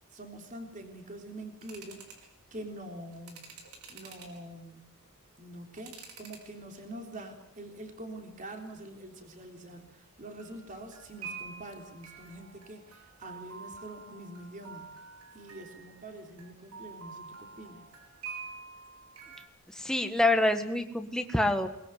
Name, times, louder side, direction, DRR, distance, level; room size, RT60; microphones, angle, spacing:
voice 1, 0.1-2.0 2.5-3.6 3.9-4.9 5.4-14.9 15.3-17.9, right 1 dB, 35° right, 4 dB, 3.6 m, -45 dB
sound 1, 1.6-2.3 3.1-4.4 5.1-6.5 6.7-7.3 7.7-7.9 10.4-19.5, right 5 dB, 85° right, 5.0 m, -47 dB
voice 2, 19.7-21.7, left 2 dB, 5° left, 6 dB, 1.6 m, -26 dB
23.0 x 21.0 x 9.4 m, 0.78 s
head